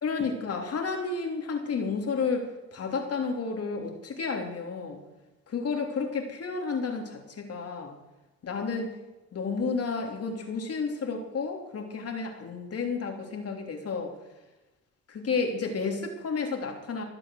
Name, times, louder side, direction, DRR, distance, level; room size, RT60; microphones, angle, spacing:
voice 1, 0.0-5.0 5.5-8.0 8.4-8.9 9.3-14.1 15.1-17.0, left 4 dB, 50° left, 3 dB, 3.2 m, -31 dB
20.5 x 7.6 x 7.7 m, 1.1 s
cardioid pair, 90°, 30 cm